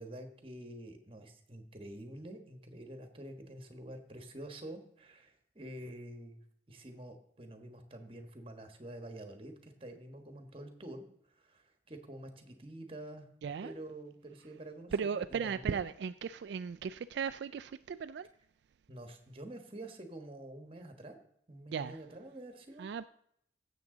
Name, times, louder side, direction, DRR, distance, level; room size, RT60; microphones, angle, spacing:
voice 1, 0.0-13.3 13.6-15.8 18.9-21.2 21.5-22.9, right 1 dB, 30° right, 1.3 m, -48 dB
voice 2, 13.4-13.7 14.9-18.3 21.7-22.0 22.8-23.1, right 6 dB, 70° right, 0.3 m, -36 dB
16.0 x 7.4 x 3.8 m
head